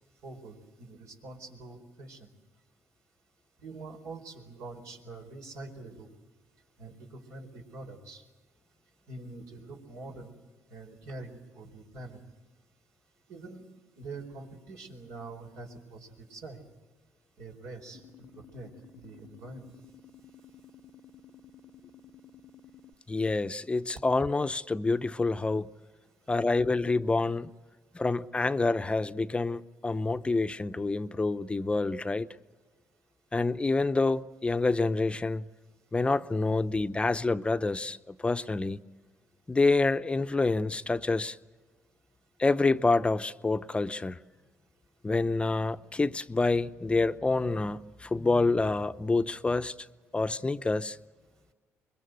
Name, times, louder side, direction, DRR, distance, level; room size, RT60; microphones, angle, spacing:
voice 1, 0.2-2.3 3.6-6.1 6.8-8.2 9.1-10.3 10.7-12.2 13.3-13.7 14.0-16.6 17.4-18.7 19.0-19.7, right 3 dB, 80° right, 4.4 m, -45 dB
sound 1, 17.9-22.9, left 6 dB, 55° left, 0.8 m, -54 dB
voice 2, 23.1-25.7 26.3-27.5 27.9-32.3 33.3-35.4 35.9-38.8 39.5-41.4 42.4-44.2 45.0-49.7 50.1-51.0, left 3 dB, 20° left, 0.7 m, -27 dB
25.0 x 22.5 x 7.9 m
cardioid pair, 85°, 6 cm